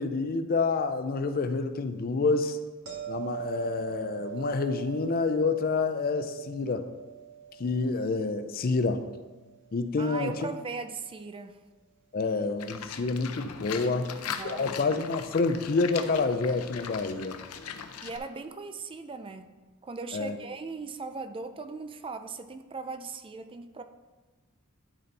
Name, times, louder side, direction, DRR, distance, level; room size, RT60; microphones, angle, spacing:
voice 1, 0.0-2.6 3.1-6.9 7.6-9.0 9.7-10.3 12.1-14.1 14.4-17.4 20.1-20.4, left 4 dB, 45° left, 10 dB, 0.5 m, -28 dB
sound 1, 2.9-9.8 15.1-15.3, right 9 dB, 60° right, 1.7 m, -42 dB
voice 2, 10.0-11.6 13.9-14.8 18.0-23.8, right 4 dB, 25° right, 8 dB, 0.4 m, -39 dB
Livestock farm animals working animals, 12.6-18.2, left 7 dB, 85° left, 0.6 m, -40 dB
12.0 x 4.3 x 4.1 m, 1.2 s
head